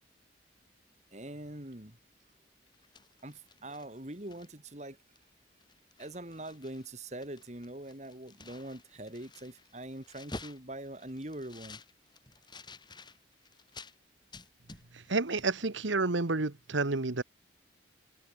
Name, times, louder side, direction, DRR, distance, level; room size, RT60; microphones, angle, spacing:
voice 1, 1.1-2.0 3.2-5.0 6.0-11.8, right 1 dB, 40° right, 2.7 m, -43 dB
sound 1, 2.7-4.7 5.2-5.3 5.6-6.9 7.1-14.0 14.3-15.1 15.4-15.5, left 2 dB, 25° left, 7.2 m, -50 dB
voice 2, 14.9-17.2, right 3 dB, 90° right, 1.4 m, -30 dB
head